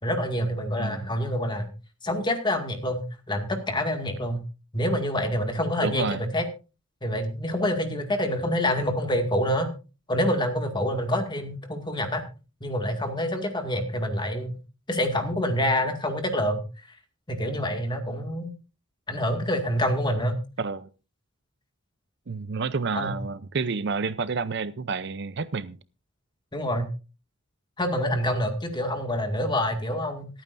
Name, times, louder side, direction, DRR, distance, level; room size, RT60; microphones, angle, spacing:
voice 1, 0.0-1.7 2.0-4.4 4.7-6.5 7.0-9.7 10.1-12.2 12.6-14.5 14.9-16.6 17.3-18.5 19.1-20.4 23.0-23.1 26.5-26.9 27.8-30.3, equal, 20° left, 2.1 m, -27 dB
voice 2, 5.8-6.2 20.6-20.9 22.3-25.8, right 4 dB, 55° right, 0.6 m, -29 dB
26.5 x 9.0 x 2.6 m
head